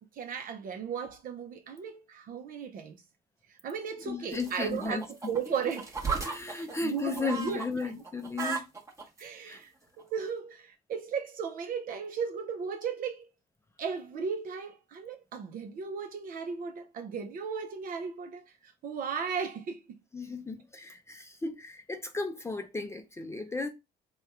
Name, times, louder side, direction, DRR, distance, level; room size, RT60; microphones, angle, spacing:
voice 1, 0.0-3.0 3.6-5.9 6.5-7.9 9.2-9.7 10.0-13.3 13.8-19.8, right 6 dB, 55° right, 0.7 m, -36 dB
voice 2, 4.0-5.0 5.7-5.8 6.2-8.6 9.4-9.6 20.1-23.7, left 3 dB, 15° left, 0.5 m, -35 dB
sound 1, 4.3-7.7 8.0-9.2 10.0-10.1, right 5 dB, 15° right, 1.1 m, -36 dB
3.4 x 2.3 x 4.3 m
cardioid pair, 110°, 17 cm